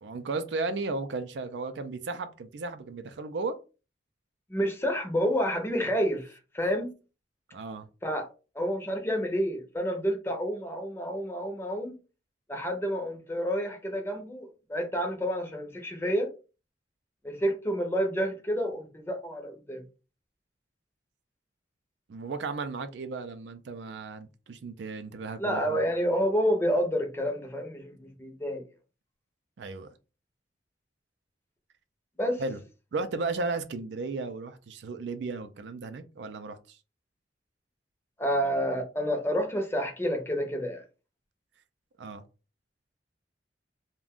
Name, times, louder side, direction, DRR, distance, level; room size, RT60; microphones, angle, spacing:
voice 1, 0.0-3.6 7.5-7.9 22.1-25.8 29.6-29.9 32.4-32.6 32.9-36.8 42.0-42.2, right 3 dB, 70° right, 0.4 m, -35 dB
voice 2, 4.5-6.9 8.0-8.3 8.5-12.0 12.5-16.3 17.2-19.8 25.4-28.6 32.2-32.4 38.2-40.8, equal, 15° left, 0.6 m, -29 dB
2.4 x 2.2 x 3.5 m
head